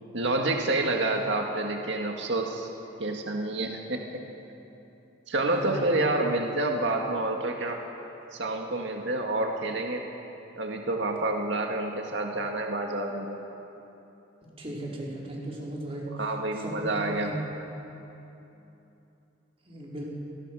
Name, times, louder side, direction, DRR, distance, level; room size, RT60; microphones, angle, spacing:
voice 1, 0.1-2.7 3.0-4.0 5.3-7.8 8.3-10.0 10.6-13.4 16.1-17.3, right 2 dB, 75° right, 2 dB, 1.9 m, -28 dB
voice 2, 5.5-5.8 14.6-16.1 16.6-17.3 19.7-20.0, right 1 dB, 30° right, -4 dB, 4.9 m, -36 dB
27.0 x 20.5 x 6.3 m, 2.9 s
head